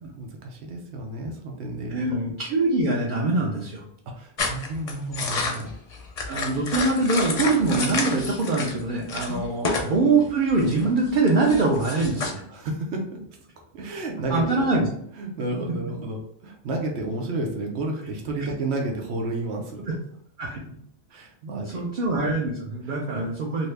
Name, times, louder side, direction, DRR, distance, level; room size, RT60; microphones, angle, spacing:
voice 1, 0.1-2.2 4.1-5.7 9.3-9.4 12.5-13.3 13.7-14.5 15.2-19.9 20.4-20.5 21.1-21.8 22.8-23.3, right 2 dB, 90° right, 2 dB, 1.0 m, -31 dB
voice 2, 1.9-3.9 6.3-12.4 14.3-14.8 19.9-20.0 20.4-20.8 21.7-23.7, right 3 dB, 55° right, -2 dB, 0.7 m, -23 dB
sound 1, 4.4-8.8 9.1-9.9 10.2-12.3, left 4 dB, 45° left, 0.6 m, -30 dB
2.7 x 2.7 x 3.3 m, 0.67 s
omnidirectional pair, 1.1 m